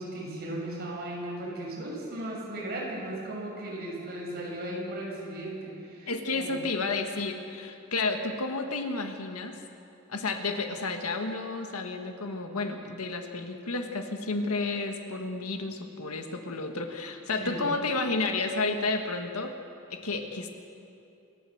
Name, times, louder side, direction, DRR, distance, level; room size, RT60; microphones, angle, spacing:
voice 1, 0.0-6.5 17.4-17.6, right 1 dB, 45° right, -4 dB, 6.9 m, -36 dB
voice 2, 6.1-9.6 10.1-19.5 19.9-20.5, left 3 dB, 85° left, 5 dB, 1.8 m, -31 dB
27.0 x 12.5 x 7.9 m, 2.7 s
head